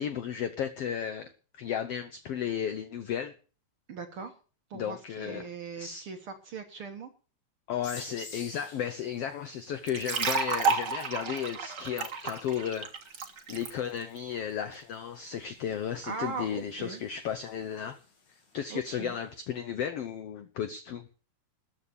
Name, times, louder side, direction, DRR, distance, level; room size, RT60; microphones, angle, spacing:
voice 1, 0.0-3.3 4.7-5.5 5.8-6.1 7.7-12.9 13.5-18.0 18.5-21.0, left 8 dB, 90° left, 1.3 m, -34 dB
voice 2, 3.9-4.3 4.7-7.1 16.0-17.0 18.7-19.2, right 5 dB, 60° right, 1.5 m, -40 dB
sound 1, 7.8-19.2, left 4 dB, 55° left, 4.2 m, -53 dB
sound 2, 9.9-13.7, right 5 dB, 45° right, 1.6 m, -31 dB
13.5 x 8.7 x 6.9 m
omnidirectional pair, 3.9 m